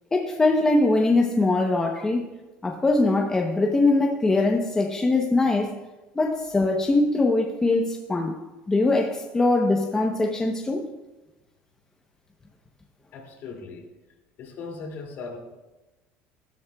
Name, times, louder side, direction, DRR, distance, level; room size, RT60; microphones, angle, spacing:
voice 1, 0.1-2.3 2.6-5.8 6.1-8.3 8.7-10.9, left 2 dB, 15° left, 1 dB, 0.8 m, -22 dB
voice 2, 13.1-13.9 14.4-15.4, left 4 dB, 50° left, 1 dB, 2.5 m, -38 dB
15.5 x 12.5 x 2.3 m, 1.1 s
cardioid pair, 150°, 5 cm